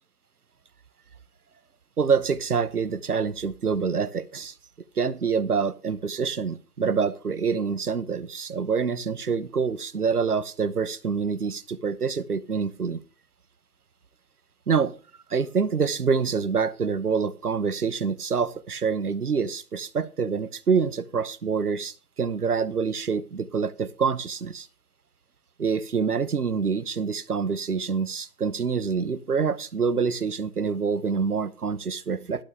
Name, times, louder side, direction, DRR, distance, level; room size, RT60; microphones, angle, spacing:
voice 1, 2.0-4.5 5.0-13.0 14.7-14.9 15.3-24.7 25.6-32.4, right 5 dB, 80° right, 1.0 m, -26 dB
12.0 x 11.5 x 3.6 m
figure-of-eight pair, 160°, 45 cm